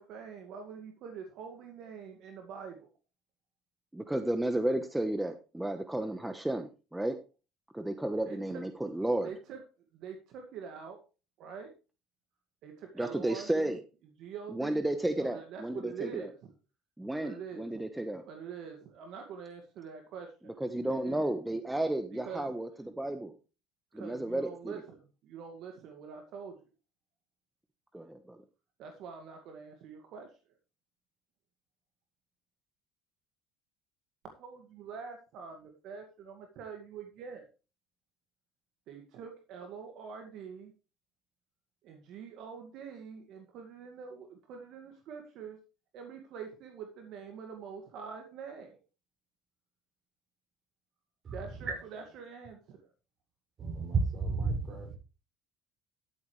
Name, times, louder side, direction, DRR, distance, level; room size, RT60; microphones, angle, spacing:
voice 1, 0.0-2.9 8.2-8.6 9.2-9.6 9.9-11.0 11.4-11.7 12.6-13.8 14.2-14.8 15.1-16.5 17.2-17.8 18.3-20.6 20.8-21.3 22.1-22.6 23.9-26.6 28.8-30.6 34.4-37.5 38.9-40.7 41.8-45.6 45.9-48.8 51.3-52.9, right 6 dB, 65° right, 2.0 m, -45 dB
voice 2, 3.9-7.2 7.7-9.3 13.0-13.8 14.5-16.1 17.0-18.2 20.6-23.3 23.9-24.5 27.9-28.4, right 1 dB, 5° right, 1.1 m, -32 dB
voice 3, 51.2-51.8 53.6-55.0, right 4 dB, 45° right, 6.1 m, -32 dB
12.5 x 8.0 x 3.3 m
supercardioid pair, 95°, 0 cm